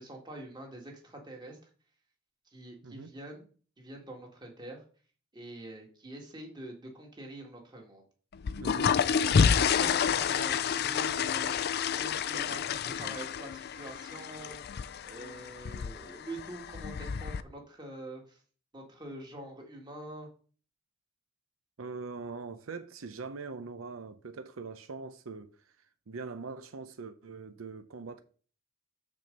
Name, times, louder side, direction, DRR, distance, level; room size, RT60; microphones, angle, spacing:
voice 1, 0.0-1.6 2.5-3.4 3.8-4.8 5.3-8.0 9.1-14.6 15.0-18.4 18.7-20.3, right 1 dB, 20° right, 1.9 m, -45 dB
sound 1, 8.3-17.4, left 7 dB, 50° left, 0.4 m, -29 dB
voice 2, 8.6-9.0 21.8-25.5 26.1-28.2, right 4 dB, 85° right, 0.7 m, -42 dB
6.2 x 4.4 x 6.5 m
head